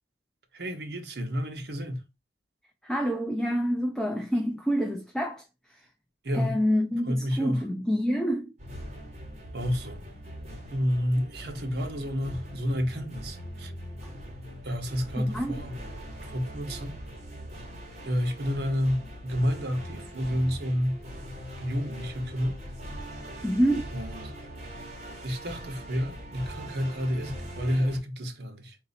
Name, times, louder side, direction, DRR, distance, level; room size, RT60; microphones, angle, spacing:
voice 1, 0.5-2.0 6.2-6.5 7.1-7.6 9.5-10.1 10.7-13.7 14.6-15.8 16.2-16.9 18.0-21.0 21.6-22.6 23.9-24.3 25.2-28.8, equal, 60° right, 0.9 m, -30 dB
voice 2, 2.8-5.4 6.3-8.5 15.2-15.5 23.4-23.9, equal, 5° left, 0.4 m, -27 dB
sound 1, 8.6-28.0, equal, 35° right, 1.2 m, -41 dB
3.9 x 2.6 x 4.1 m
head